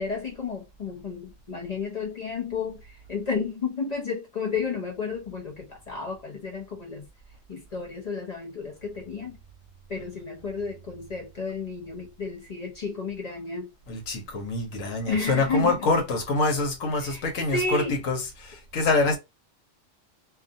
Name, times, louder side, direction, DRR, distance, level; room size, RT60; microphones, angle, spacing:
voice 1, 0.0-7.1 7.5-9.4 9.9-13.7 15.1-15.9 17.0-18.0, left 4 dB, 50° left, 0.5 m, -32 dB
voice 2, 13.9-19.2, left 3 dB, 85° left, 1.3 m, -25 dB
2.6 x 2.4 x 2.6 m
omnidirectional pair, 1.3 m